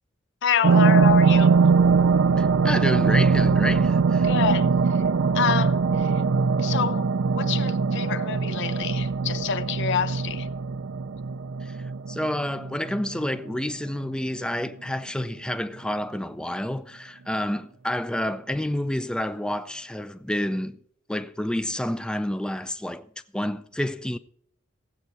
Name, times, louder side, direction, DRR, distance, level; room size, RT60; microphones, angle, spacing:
voice 1, 0.4-1.6 4.2-5.0 5.3-6.2 6.6-7.1 7.4-10.5, left 7 dB, 60° left, 0.5 m, -27 dB
sound 1, 0.6-13.6 14.0-14.1, right 5 dB, 70° right, 0.5 m, -21 dB
voice 2, 2.4-4.3 11.6-20.8 21.1-24.2, left 1 dB, 5° left, 0.4 m, -29 dB
16.5 x 8.0 x 4.6 m
head